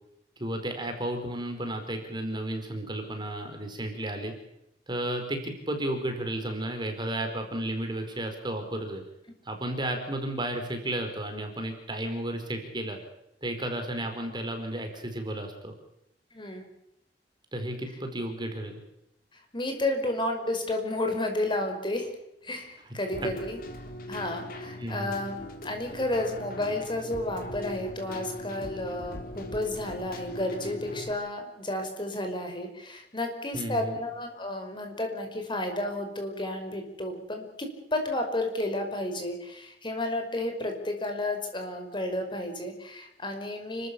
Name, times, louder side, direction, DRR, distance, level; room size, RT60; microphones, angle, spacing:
voice 1, 0.4-4.3 4.9-9.0 9.4-13.0 13.4-15.7 17.5-18.8 23.2-23.3 24.8-25.1 33.5-33.9, right 1 dB, 25° right, 5 dB, 4.6 m, -33 dB
voice 2, 16.3-16.7 19.3-22.1 22.4-23.6 24.1-43.9, left 1 dB, 25° left, 5 dB, 5.3 m, -32 dB
Keyboard (musical), 23.1-31.1, left 1 dB, 55° left, 3.6 m, -40 dB
29.5 x 14.0 x 8.5 m, 0.82 s
head